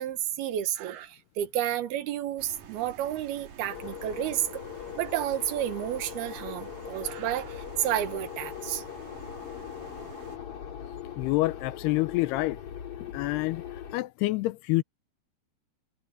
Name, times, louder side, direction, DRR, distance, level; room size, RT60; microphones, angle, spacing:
voice 1, 0.0-4.6 5.0-8.8, right 11 dB, 75° right, 3.3 m, -31 dB
sound 1, 2.4-10.4, right 8 dB, 55° right, 3.4 m, -49 dB
sound 2, 3.7-14.0, left 9 dB, 45° left, 2.6 m, -40 dB
voice 2, 11.2-12.6 13.1-13.6 13.9-14.8, left 20 dB, 85° left, 2.8 m, -27 dB
omnidirectional pair, 4.6 m